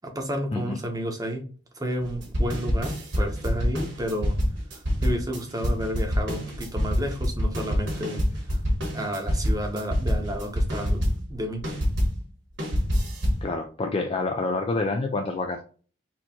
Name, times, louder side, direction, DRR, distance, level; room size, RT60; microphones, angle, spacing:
voice 1, 0.0-1.4 1.7-4.4 4.7-8.2 8.9-11.0 11.3-11.6, equal, 20° right, 3 dB, 0.8 m, -31 dB
sound 1, 2.0-12.2 12.6-13.5, equal, 65° right, 1.4 m, -26 dB
voice 2, 13.4-15.6, left 3 dB, 30° left, 4 dB, 0.3 m, -27 dB
4.2 x 2.9 x 2.8 m, 0.39 s
head